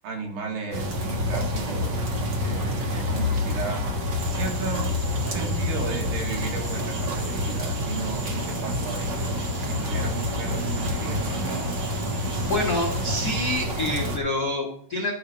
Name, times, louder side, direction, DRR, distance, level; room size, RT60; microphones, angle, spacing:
voice 1, 0.0-2.1 2.4-3.9 4.3-11.7, right 4 dB, 85° right, 2 dB, 3.9 m, -35 dB
sound 1, 0.7-14.2, left 1 dB, 65° right, 1.0 m, -28 dB
sound 2, 4.2-13.7, right 3 dB, 50° right, 2.3 m, -41 dB
voice 2, 12.4-15.1, left 1 dB, 80° left, -1 dB, 0.8 m, -27 dB
12.5 x 5.7 x 6.0 m, 0.67 s
omnidirectional pair, 4.6 m